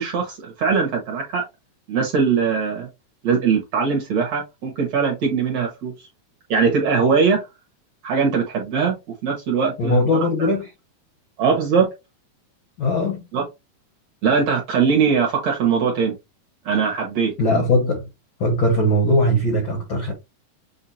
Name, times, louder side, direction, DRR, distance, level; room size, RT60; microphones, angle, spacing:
voice 1, 0.0-1.5 1.9-2.9 3.2-5.9 6.5-7.4 8.0-9.0 9.2-10.0 11.4-11.9 13.3-13.5 14.2-16.1 16.7-17.3, right 5 dB, 65° right, 1.9 m, -20 dB
voice 2, 9.8-10.7 12.8-13.2 17.4-18.0 18.4-20.1, left 1 dB, 80° left, 1.1 m, -19 dB
7.0 x 2.7 x 2.8 m
omnidirectional pair, 4.3 m